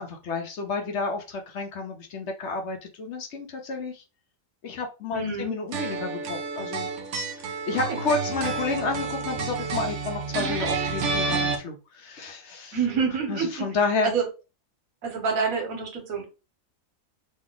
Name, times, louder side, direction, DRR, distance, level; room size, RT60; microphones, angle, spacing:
voice 1, 0.0-4.0 4.6-6.9 7.4-12.8 13.3-14.1, left 4 dB, 60° left, 1.0 m, -30 dB
voice 2, 5.1-5.5 7.8-8.0 12.7-13.7 14.0-14.2 15.0-16.2, right 5 dB, 80° right, 1.4 m, -27 dB
sound 1, 5.7-11.6, right 4 dB, 65° right, 0.9 m, -29 dB
3.1 x 2.5 x 3.8 m
omnidirectional pair, 1.4 m